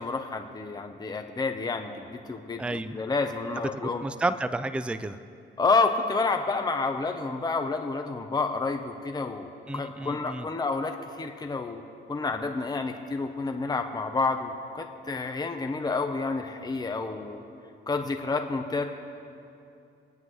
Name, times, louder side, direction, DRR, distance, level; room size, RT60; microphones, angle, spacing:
voice 1, 0.0-4.0 5.6-11.8 12.1-17.4 17.9-18.8, left 3 dB, 20° left, 5 dB, 0.8 m, -29 dB
voice 2, 2.6-3.0 3.7-5.2 9.7-10.5, right 2 dB, 5° right, 12 dB, 0.4 m, -31 dB
26.0 x 9.4 x 3.2 m, 2.6 s
cardioid pair, 90°, 20 cm